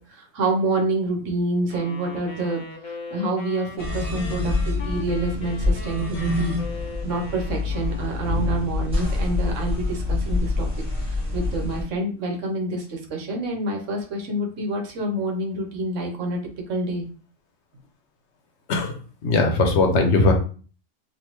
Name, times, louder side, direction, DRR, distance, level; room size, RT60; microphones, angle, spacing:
voice 1, 0.1-6.5 7.0-10.7 11.1-16.4 16.7-17.0, right 2 dB, 75° right, 1 dB, 1.2 m, -27 dB
sound 1, 1.7-8.7, left 3 dB, 50° left, 0.6 m, -40 dB
sound 2, 3.8-11.8, left 3 dB, 5° right, 1.6 m, -26 dB
voice 2, 19.2-20.3, left 3 dB, 65° left, 4 dB, 1.0 m, -19 dB
3.3 x 2.6 x 2.9 m, 0.39 s
omnidirectional pair, 1.3 m